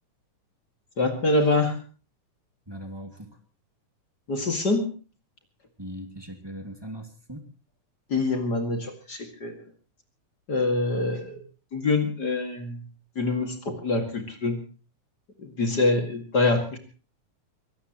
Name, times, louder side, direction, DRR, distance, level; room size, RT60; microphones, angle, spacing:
voice 1, 1.0-1.8 4.3-4.9 8.1-9.6 10.5-11.4 11.7-12.8 13.2-14.6 15.4-16.8, left 2 dB, 35° left, 6 dB, 2.4 m, -25 dB
voice 2, 2.7-3.3 5.8-7.5, equal, 10° right, 6 dB, 1.9 m, -39 dB
24.0 x 17.0 x 3.0 m, 0.35 s
omnidirectional pair, 3.6 m